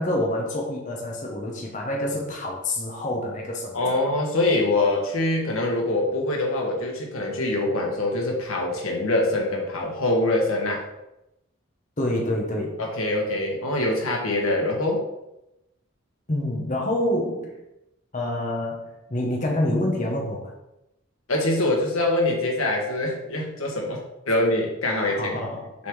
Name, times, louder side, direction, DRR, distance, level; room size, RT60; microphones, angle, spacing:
voice 1, 0.0-4.0 12.0-12.8 16.3-17.6 18.1-20.5 25.2-25.7, left 1 dB, 35° left, -1 dB, 1.1 m, -27 dB
voice 2, 3.7-10.8 12.8-15.0 21.3-24.0 24.2-25.4 25.8-25.9, left 2 dB, 85° left, 0 dB, 1.5 m, -24 dB
6.9 x 3.7 x 4.7 m, 0.89 s
head